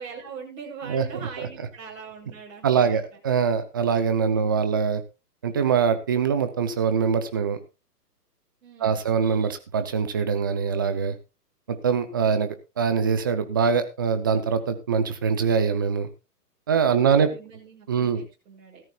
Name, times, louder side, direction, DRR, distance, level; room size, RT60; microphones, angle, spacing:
voice 1, 0.0-3.2 4.3-4.6 8.6-9.1 16.9-18.8, right 6 dB, 50° right, -3 dB, 6.9 m, -42 dB
voice 2, 2.6-5.0 5.4-7.6 8.8-11.2 11.7-16.1 16.7-17.3 17.9-18.2, right 6 dB, 15° right, 9 dB, 0.6 m, -23 dB
16.5 x 13.5 x 2.3 m, 0.27 s
hypercardioid pair, 155°, 48 cm